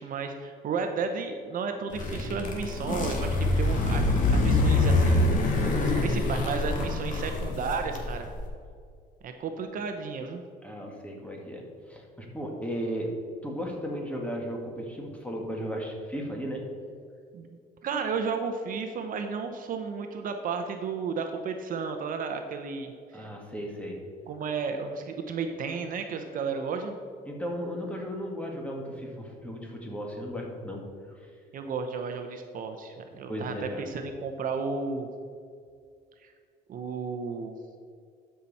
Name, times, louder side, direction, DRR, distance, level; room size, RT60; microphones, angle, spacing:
voice 1, 0.0-8.3 9.2-10.4 17.3-23.3 24.3-27.0 31.5-35.1 36.2-36.3 36.7-37.5, right 5 dB, 55° right, 6 dB, 0.8 m, -33 dB
sound 1, 1.9-8.4, left 2 dB, 50° left, 1.9 m, -25 dB
voice 2, 10.6-13.1 13.4-16.7 23.1-24.0 27.3-31.3 33.3-33.9, equal, 10° left, 0 dB, 1.9 m, -35 dB
12.5 x 5.8 x 4.2 m, 2.3 s
cardioid pair, 110°, 17 cm